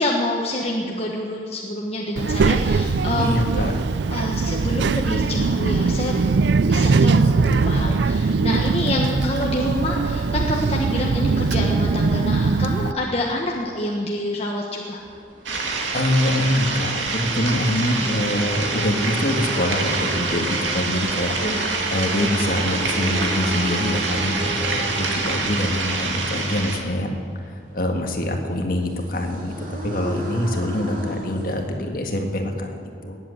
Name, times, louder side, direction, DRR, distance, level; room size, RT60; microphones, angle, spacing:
voice 1, 0.0-3.5 4.1-6.1 6.7-15.0 18.0-18.3 21.4-21.6, left 1 dB, 35° left, -1 dB, 1.2 m, -27 dB
Child speech kid speaking, 2.2-12.9, right 4 dB, 70° right, 0.4 m, -21 dB
voice 2, 3.2-3.8 15.9-21.4 21.9-33.2, left 1 dB, 50° left, 3 dB, 1.8 m, -24 dB
sound 1, 15.0-31.8, right 1 dB, 45° right, 2.8 m, -35 dB
sound 2, 15.5-26.8, right 3 dB, 85° right, 2.3 m, -26 dB
19.5 x 8.1 x 8.5 m, 2.4 s
head